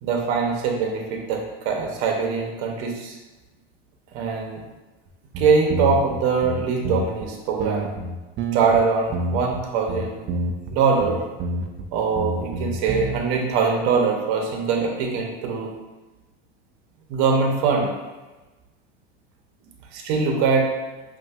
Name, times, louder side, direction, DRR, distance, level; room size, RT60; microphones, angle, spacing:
voice 1, 0.0-3.2 4.1-4.6 5.4-7.9 8.5-10.2 10.7-11.2 11.9-15.7 17.1-17.9 19.9-20.7, right 5 dB, 60° right, 1 dB, 0.9 m, -22 dB
sound 1, 5.1-5.2 5.3-7.3 7.6-8.8 9.1-9.6 9.9-10.7 11.0-11.9 12.2-13.2, right 2 dB, 35° right, 0.4 m, -28 dB
5.3 x 2.7 x 2.4 m, 1.2 s
supercardioid pair, 115°, 32 cm